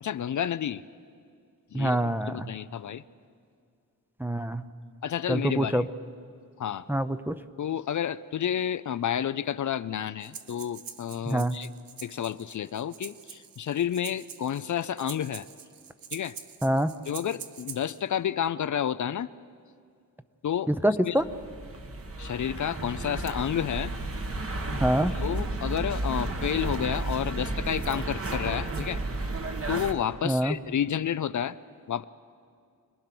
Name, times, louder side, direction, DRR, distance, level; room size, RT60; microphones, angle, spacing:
voice 1, 0.0-0.8 1.7-2.0 2.3-3.0 5.0-5.9 6.6-6.9 7.6-11.7 12.0-15.5 16.1-16.4 17.1-19.3 20.4-20.7 21.1-21.2 22.2-23.9 25.2-29.0 29.7-31.6 31.9-32.0, left 9 dB, 60° left, 14 dB, 0.5 m, -30 dB
voice 2, 1.7-2.5 4.2-4.6 5.3-5.8 6.9-7.4 11.3-11.6 16.6-16.9 20.7-21.2 24.8-25.1 30.2-30.6, right 1 dB, 5° right, 11 dB, 0.6 m, -25 dB
Breathing, 10.2-18.0, right 7 dB, 90° right, 1.0 m, -45 dB
sound 1, 21.2-29.9, right 2 dB, 45° right, 1.4 m, -32 dB
26.0 x 20.0 x 6.0 m, 2.3 s
wide cardioid pair, 110°, 33 cm